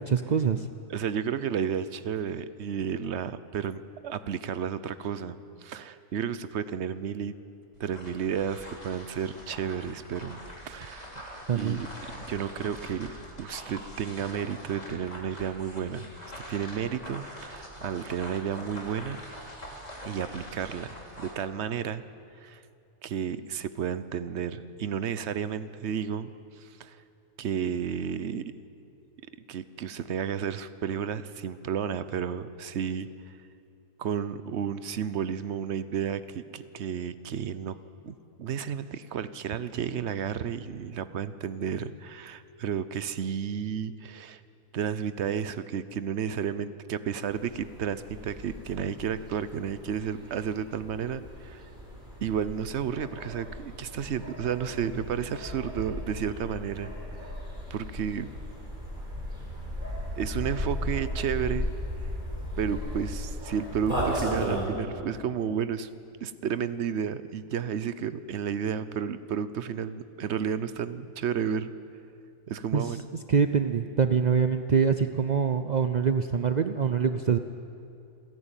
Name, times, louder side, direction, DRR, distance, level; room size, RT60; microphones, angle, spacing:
voice 1, 0.1-0.7 11.5-11.8 72.7-72.9 73.3-77.4, right 6 dB, 75° right, 9 dB, 0.4 m, -24 dB
voice 2, 0.9-7.3 7.8-11.0 11.5-11.9 12.2-13.1 13.4-16.1 16.5-19.2 20.0-22.0 22.4-22.6 23.0-26.3 26.6-27.0 27.4-28.5 29.5-33.1 34.0-37.8 38.0-44.4 44.7-51.6 52.2-56.9 57.7-58.3 60.2-61.7 62.6-65.9 66.2-71.7 72.5-73.0, right 8 dB, 55° right, 14 dB, 0.9 m, -32 dB
sound 1, 7.7-21.4, equal, 25° left, 3.3 m, -44 dB
sound 2, 47.3-64.7, equal, 35° right, 4.6 m, -36 dB
28.0 x 11.0 x 9.0 m, 2.6 s
omnidirectional pair, 1.5 m